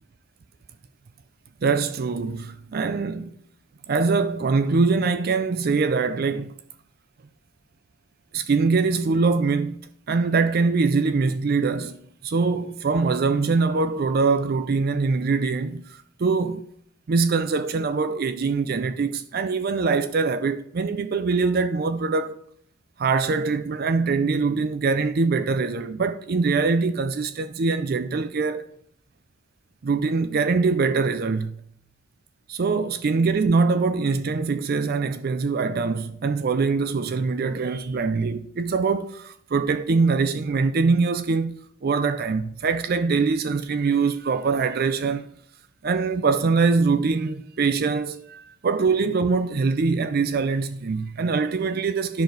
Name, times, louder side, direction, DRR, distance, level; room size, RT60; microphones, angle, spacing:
voice 1, 1.6-3.3 3.9-6.6 8.3-16.7 17.1-22.4 23.0-28.6 29.8-31.6 32.5-45.3 45.8-52.2, right 4 dB, 45° right, 0.4 m, -23 dB
10.5 x 6.6 x 3.9 m
head